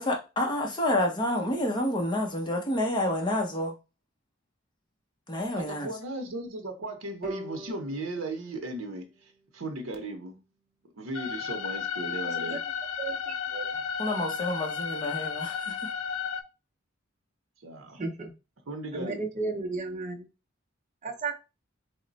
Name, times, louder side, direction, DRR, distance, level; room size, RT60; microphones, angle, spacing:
voice 1, 0.0-3.7 5.3-5.9 14.0-15.8, left 1 dB, 20° left, 0.7 m, -29 dB
voice 2, 5.5-10.4 10.9-12.6 17.6-18.0 18.7-19.2, right 2 dB, 75° right, 0.7 m, -36 dB
sound 1, 7.2-10.5, right 3 dB, ahead, 1.5 m, -44 dB
sound 2, 11.1-16.4, left 7 dB, 90° left, 0.4 m, -33 dB
voice 3, 12.2-12.6 13.0-13.7 18.0-18.3 18.9-20.3 21.0-21.3, right 3 dB, 35° right, 0.6 m, -34 dB
3.1 x 2.1 x 3.9 m
head